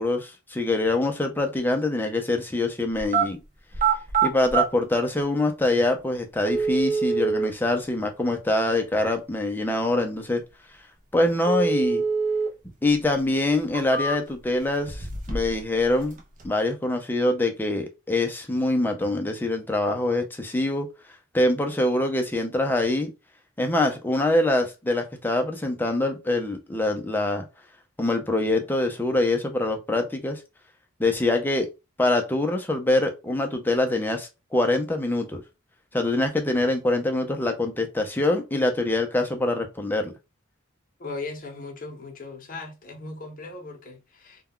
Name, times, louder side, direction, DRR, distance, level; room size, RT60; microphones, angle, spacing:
voice 1, 0.0-3.4 4.2-10.4 11.1-12.0 12.8-16.2 16.4-20.9 21.3-23.1 23.6-27.5 28.0-30.4 31.0-31.7 32.0-35.4 35.9-40.1, left 2 dB, 10° left, 0.5 m, -24 dB
sound 1, 3.0-3.3 3.7-4.7 5.6-5.7 6.5-7.5 11.5-12.5 12.9-13.0 13.6-14.5 14.9-15.6 15.9-16.5, right 5 dB, 40° right, 0.5 m, -25 dB
voice 2, 41.0-44.4, left 3 dB, 45° left, 0.7 m, -38 dB
2.2 x 2.2 x 3.6 m
head